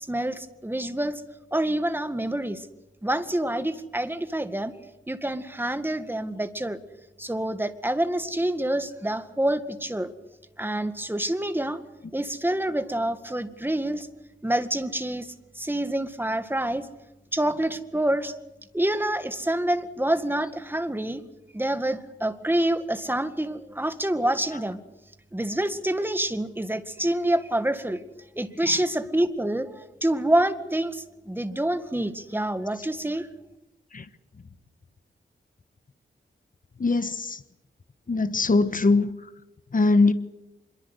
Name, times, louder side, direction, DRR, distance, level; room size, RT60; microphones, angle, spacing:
voice 1, 0.1-1.2 1.5-2.7 3.0-4.7 5.1-6.8 7.2-10.1 10.6-11.8 12.1-14.1 14.4-16.9 17.3-18.4 18.7-21.2 21.5-24.8 25.3-28.0 28.4-33.3, right 1 dB, 10° right, 9 dB, 1.9 m, -27 dB
voice 2, 36.8-37.4 38.1-39.1 39.7-40.1, left 3 dB, 45° left, 11 dB, 1.4 m, -21 dB
25.5 x 22.5 x 8.3 m, 0.93 s
wide cardioid pair, 110°, 20 cm